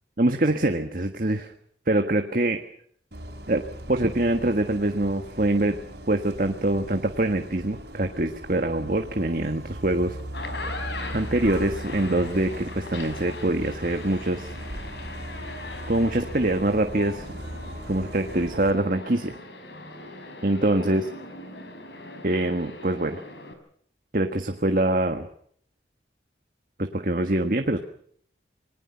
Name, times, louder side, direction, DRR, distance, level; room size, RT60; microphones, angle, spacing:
voice 1, 0.2-1.5 1.9-2.6 3.5-5.8 6.1-10.2 11.1-14.5 15.9-17.3 17.9-19.4 20.4-21.1 22.2-23.2 24.1-25.3 26.8-27.8, right 1 dB, 50° right, 6 dB, 1.5 m, -24 dB
Bus, 3.1-18.7, right 1 dB, 70° right, 4.6 m, -39 dB
sound 1, 10.2-23.5, left 2 dB, 75° left, 4.9 m, -40 dB
28.0 x 20.5 x 5.7 m, 0.62 s
head